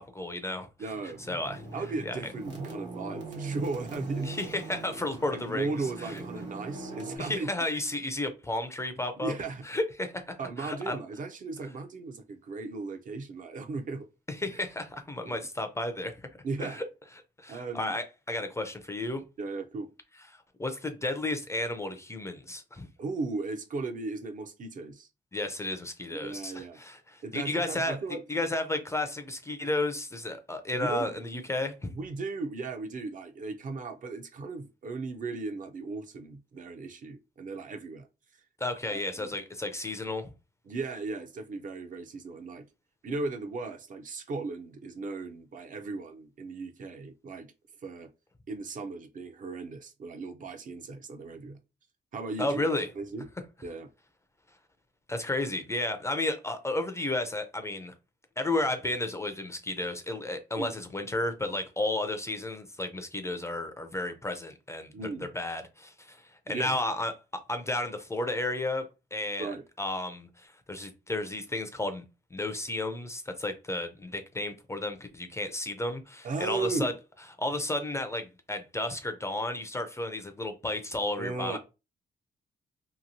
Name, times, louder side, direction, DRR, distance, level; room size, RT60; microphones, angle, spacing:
voice 1, 0.0-0.7 1.3-1.6 2.0-2.2 4.2-6.2 7.2-9.3 9.6-11.0 14.3-16.2 16.6-16.8 17.4-19.2 20.6-22.9 25.3-28.0 28.3-31.9 38.6-40.3 52.4-52.9 55.1-57.9 58.4-64.9 65.3-67.1 67.5-68.8 69.1-69.5 69.8-72.0 72.3-76.9 77.4-81.6, left 2 dB, 15° left, 0.4 m, -32 dB
voice 2, 0.8-1.2 1.7-4.5 5.3-7.5 9.2-9.7 10.4-14.1 15.2-15.5 16.4-16.8 17.5-18.0 19.4-19.9 23.0-25.1 26.2-26.8 27.2-28.2 30.8-31.2 31.9-38.1 38.9-39.3 40.7-42.7 43.0-47.5 47.8-48.1 48.5-51.6 52.1-52.6 53.0-53.3 53.6-53.9 60.6-60.7 64.9-65.3 66.5-66.8 69.4-69.6 76.2-76.9 81.2-81.6, right 3 dB, 45° right, 0.5 m, -36 dB
sound 1, 0.8-7.2, right 3 dB, 80° right, 1.2 m, -40 dB
2.9 x 2.6 x 2.6 m
cardioid pair, 125°, 19 cm